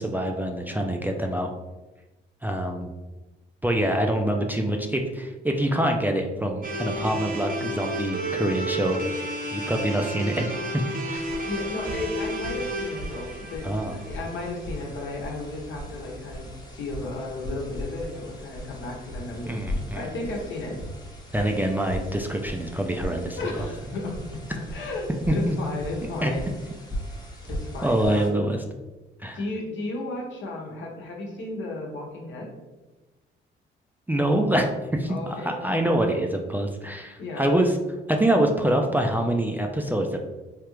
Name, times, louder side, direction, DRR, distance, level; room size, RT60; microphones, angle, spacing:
voice 1, 0.0-1.5 2.4-2.9 3.6-9.2 9.5-10.8 11.1-11.2 13.6-14.0 19.5-20.1 21.3-23.4 25.3-25.5 26.2-26.3 27.8-28.6 29.2-29.4 34.1-34.7 35.0-37.8 38.1-40.2, right 1 dB, 10° right, 2 dB, 0.3 m, -25 dB
sound 1, 6.6-14.7, right 1 dB, 45° right, 0.7 m, -32 dB
sound 2, 11.1-28.3, equal, 20° left, 0.8 m, -38 dB
voice 2, 11.5-19.6 19.9-20.8 23.4-24.2 24.6-26.5 27.5-28.3 29.3-32.5 35.1-35.6 37.2-37.6, left 2 dB, 70° left, -1 dB, 0.9 m, -34 dB
3.3 x 2.4 x 3.0 m, 1.1 s
cardioid pair, 90°, 20 cm